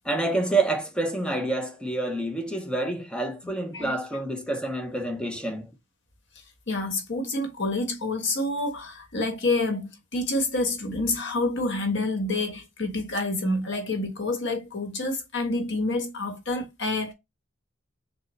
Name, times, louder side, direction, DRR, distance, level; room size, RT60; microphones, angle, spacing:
voice 1, 0.1-5.7, right 2 dB, 5° left, 0.8 m, -28 dB
voice 2, 6.7-17.1, left 2 dB, 60° left, 1.4 m, -28 dB
6.5 x 2.3 x 3.1 m
head